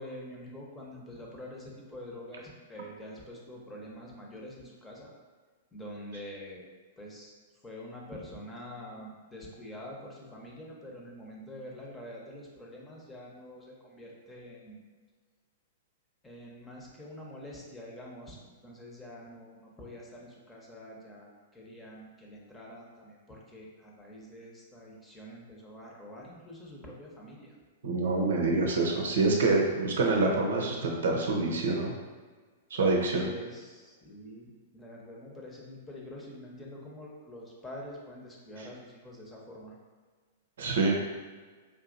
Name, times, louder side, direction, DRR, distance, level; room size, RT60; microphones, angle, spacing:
voice 1, 0.0-5.1 5.7-6.7 7.0-7.3 7.6-14.8 16.2-27.6 33.2-39.7, left 1 dB, 15° left, -3 dB, 0.9 m, -46 dB
voice 2, 27.8-31.9 32.7-33.3 38.6-38.7 40.6-41.0, right 3 dB, 70° right, 1 dB, 0.6 m, -26 dB
4.8 x 2.8 x 2.6 m, 1.5 s
hypercardioid pair, 110°, 0 cm